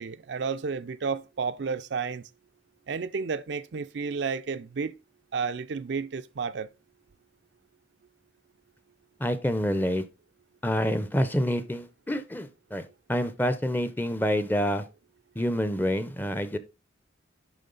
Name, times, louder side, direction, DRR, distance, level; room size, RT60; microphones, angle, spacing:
voice 1, 0.0-2.2 2.9-4.9 5.3-6.7, right 5 dB, 60° right, 0.4 m, -31 dB
voice 2, 9.2-10.0 10.6-14.8 15.4-16.6, equal, 10° left, 0.6 m, -27 dB
11.0 x 3.6 x 3.9 m
head